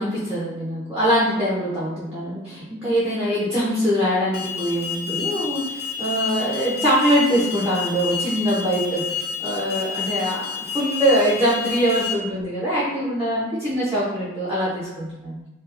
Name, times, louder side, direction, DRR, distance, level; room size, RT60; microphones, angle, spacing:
voice 1, 0.0-15.4, equal, 15° right, -9 dB, 0.5 m, -23 dB
Alarm, 4.3-12.1, left 6 dB, 45° left, 0.3 m, -30 dB
2.7 x 2.4 x 2.4 m, 0.99 s
head